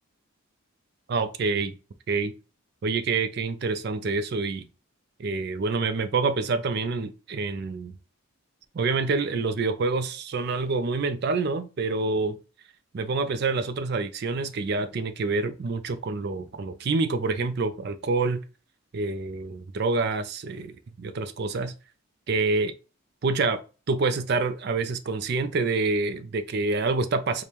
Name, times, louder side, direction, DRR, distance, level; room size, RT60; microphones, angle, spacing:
voice 1, 1.1-1.7 2.1-2.3 2.8-4.7 5.2-7.9 8.7-12.4 12.9-18.4 18.9-21.7 22.3-22.7 23.2-23.6 23.9-27.4, right 3 dB, 50° right, 0.4 m, -27 dB
5.1 x 2.1 x 2.9 m
head